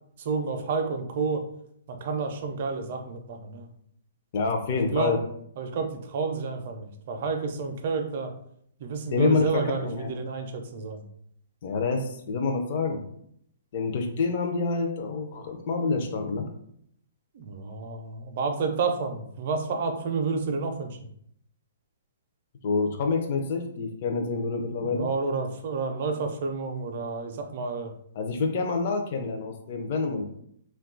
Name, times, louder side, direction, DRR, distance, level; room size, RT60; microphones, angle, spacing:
voice 1, 0.3-1.4 2.0-3.6 4.9-5.1 5.6-5.9 6.1-8.3 8.8-9.8 10.2-11.0 17.4-20.9 24.8-27.9, right 4 dB, 45° right, 5 dB, 0.4 m, -30 dB
voice 2, 4.3-5.2 9.1-10.1 11.6-13.0 13.7-16.5 22.6-25.1 28.1-30.3, left 4 dB, 40° left, 4 dB, 0.4 m, -27 dB
2.6 x 2.2 x 3.7 m, 0.69 s
hypercardioid pair, 165°, 0 cm